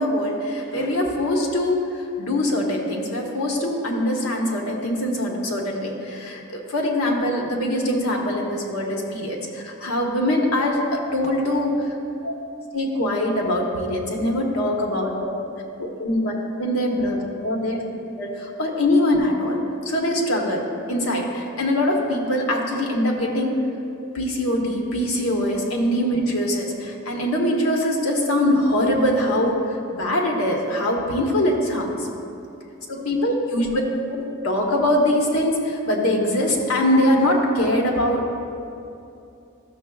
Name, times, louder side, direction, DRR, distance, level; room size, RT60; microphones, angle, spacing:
voice 1, 0.0-12.0 12.2-12.3 12.7-15.4 15.8-16.3 16.6-17.8 18.2-19.6 19.8-23.6 24.1-32.1 32.9-33.7 34.1-38.2, left 1 dB, 85° left, -1 dB, 1.2 m, -23 dB
13.0 x 6.7 x 2.3 m, 2.7 s
head